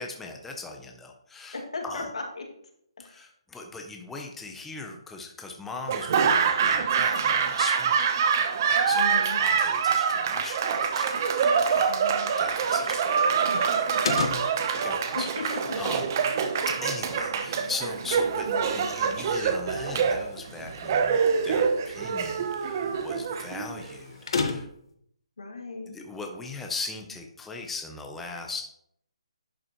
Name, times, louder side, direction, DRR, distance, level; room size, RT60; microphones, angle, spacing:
voice 1, 0.0-1.6 1.8-2.1 3.0-12.0 12.4-16.0 16.7-24.7 25.9-28.7, left 3 dB, 5° left, 2 dB, 0.6 m, -39 dB
voice 2, 1.5-2.5 3.0-3.2 8.9-9.4 11.9-12.3 15.1-15.4 25.4-25.9, left 3 dB, 80° left, 2 dB, 2.1 m, -36 dB
Laughter / Applause, 5.9-24.0, right 6 dB, 35° right, 0.8 m, -25 dB
sound 1, 14.0-24.9, left 4 dB, 55° left, 1.2 m, -37 dB
10.5 x 6.1 x 3.0 m, 0.72 s
hypercardioid pair, 160°, 3 cm